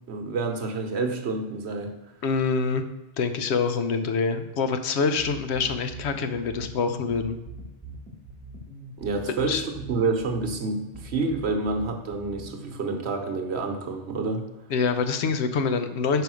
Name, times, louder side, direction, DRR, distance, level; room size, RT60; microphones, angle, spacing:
voice 1, 0.1-1.9 9.0-14.5, right 3 dB, 65° right, 4 dB, 1.1 m, -28 dB
voice 2, 2.2-2.8 3.2-7.4 9.3-9.6 14.7-16.2, left 5 dB, 70° left, 9 dB, 0.9 m, -25 dB
sound 1, 5.2-12.8, right 2 dB, 5° left, 1.2 m, -42 dB
5.0 x 4.8 x 6.1 m, 0.98 s
omnidirectional pair, 1.2 m